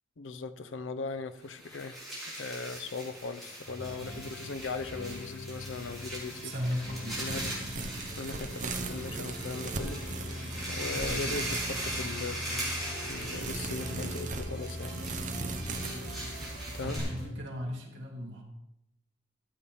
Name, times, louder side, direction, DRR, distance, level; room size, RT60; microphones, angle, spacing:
voice 1, 0.2-2.0 2.3-6.5 7.2-7.5 8.1-10.0 10.7-12.7 13.1-15.0 16.7-17.1, left 4 dB, 75° left, 12 dB, 0.6 m, -39 dB
sound 1, 1.4-17.2, right 1 dB, ahead, 3.4 m, -40 dB
sound 2, 3.7-17.3, left 1 dB, 50° left, 4.2 m, -42 dB
voice 2, 6.4-7.2 11.1-11.4 16.8-18.4, equal, 70° right, -1 dB, 2.1 m, -37 dB
sound 3, 7.1-17.0, right 3 dB, 40° right, 0.8 m, -39 dB
13.0 x 7.2 x 3.5 m, 0.85 s
head